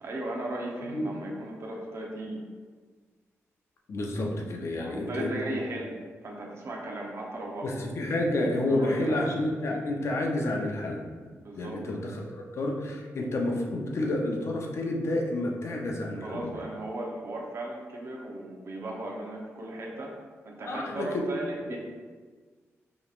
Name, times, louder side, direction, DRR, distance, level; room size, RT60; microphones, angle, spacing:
voice 1, 0.0-2.4 4.7-5.9 6.2-7.7 8.7-9.3 11.4-11.8 16.2-20.1 20.4-21.8, right 1 dB, 60° right, -1 dB, 0.8 m, -36 dB
voice 2, 3.9-5.6 7.6-16.5 20.6-21.2 21.7-21.8, left 1 dB, 60° left, 0 dB, 0.6 m, -30 dB
5.0 x 3.0 x 2.4 m, 1.5 s
wide cardioid pair, 115°, 5 cm